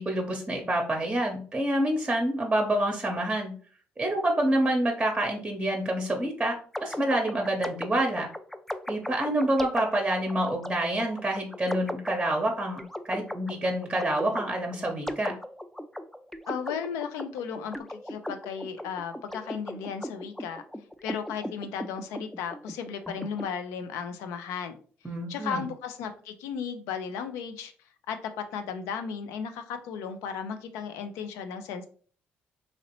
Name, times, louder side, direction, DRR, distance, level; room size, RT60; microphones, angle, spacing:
voice 1, 0.0-3.5 4.0-6.5 6.8-8.3 8.9-12.8 13.0-15.3 25.0-25.6, right 1 dB, 15° right, 0.7 m, -27 dB
sound 1, 6.7-23.4, equal, 5° left, 0.3 m, -38 dB
voice 2, 16.5-17.7 18.0-20.6 21.0-24.7 25.3-27.7 28.1-31.9, left 7 dB, 85° left, 0.4 m, -35 dB
2.9 x 2.8 x 2.9 m
supercardioid pair, 65°, 5 cm